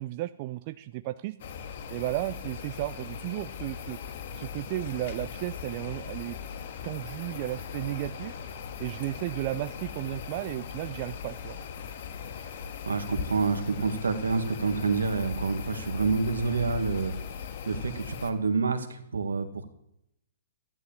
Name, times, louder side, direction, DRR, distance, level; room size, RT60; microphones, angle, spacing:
voice 1, 0.0-1.4 1.9-4.0 4.3-6.4 6.8-8.4 8.8-11.6, right 17 dB, 40° right, 11 dB, 0.6 m, -34 dB
sound 1, 1.4-18.3, left 6 dB, 55° left, 1.8 m, -39 dB
voice 2, 12.8-17.1 17.7-19.7, right 4 dB, 80° right, 8 dB, 1.9 m, -28 dB
13.5 x 11.0 x 7.4 m, 0.80 s
hypercardioid pair, 130°, 0 cm